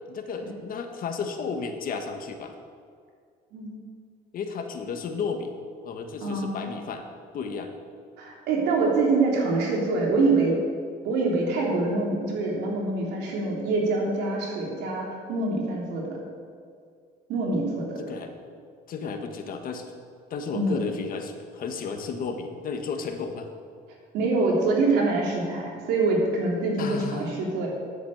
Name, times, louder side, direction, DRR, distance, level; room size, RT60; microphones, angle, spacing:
voice 1, 0.1-2.5 4.3-5.5 5.8-7.1 7.3-7.7 18.0-18.3 18.9-19.9 20.3-23.5 26.8-27.3, left 5 dB, 60° left, 5 dB, 1.5 m, -33 dB
voice 2, 6.2-6.7 8.2-10.6 11.0-16.2 17.3-18.0 20.5-20.8 24.1-27.7, right 3 dB, 85° right, -1 dB, 3.3 m, -25 dB
10.5 x 8.2 x 8.0 m, 2.1 s
cardioid pair, 110°, 17 cm